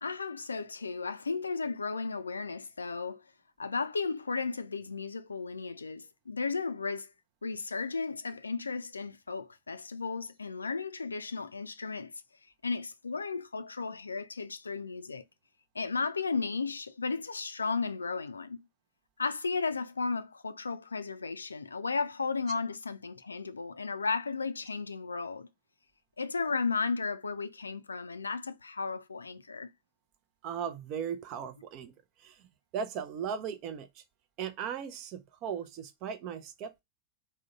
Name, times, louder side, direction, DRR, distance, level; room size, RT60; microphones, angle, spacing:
voice 1, 0.0-3.2 3.6-7.1 7.4-12.1 12.6-15.2 15.7-18.6 19.2-25.5 26.2-29.7, left 4 dB, 75° left, 0.3 m, -34 dB
voice 2, 30.4-31.9 32.2-32.4 32.7-33.9 34.4-36.8, right 7 dB, 40° right, 0.5 m, -37 dB
3.6 x 2.2 x 3.9 m
figure-of-eight pair, 90°, 0 cm